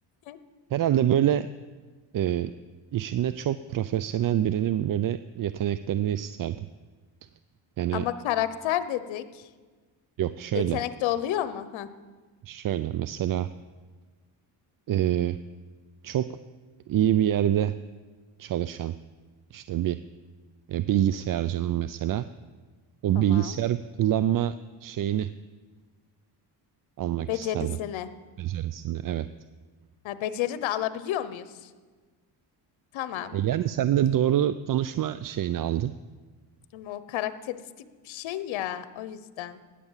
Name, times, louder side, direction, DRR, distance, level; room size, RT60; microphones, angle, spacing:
voice 1, 0.7-1.5 2.1-2.5 2.9-6.7 7.8-8.0 10.2-10.8 12.4-13.5 14.9-15.4 16.0-16.2 16.9-17.7 18.4-18.9 19.5-20.0 20.7-22.3 23.0-24.5 24.8-25.3 27.0-27.8 28.4-29.3 33.3-35.9, right 11 dB, 45° right, 13 dB, 0.5 m, -26 dB
voice 2, 7.9-9.4 10.5-11.9 23.1-23.6 27.3-28.1 30.0-31.7 32.9-33.4 36.7-37.6 38.0-39.6, left 12 dB, 80° left, 13 dB, 1.0 m, -31 dB
17.0 x 10.0 x 7.3 m, 1.4 s
cardioid pair, 95°, 46 cm